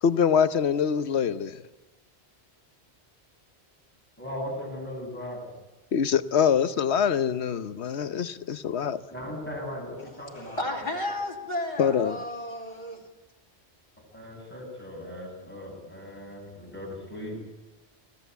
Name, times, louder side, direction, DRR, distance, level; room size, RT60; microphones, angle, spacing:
voice 1, 0.0-1.6 5.9-9.0 11.8-12.2, left 7 dB, 80° left, 1.2 m, -24 dB
voice 2, 4.2-5.5 9.1-10.6 14.1-17.4, left 1 dB, 10° left, 7.8 m, -38 dB
voice 3, 10.0-13.0, left 1 dB, 45° left, 3.2 m, -33 dB
24.0 x 16.5 x 8.2 m
omnidirectional pair, 1.1 m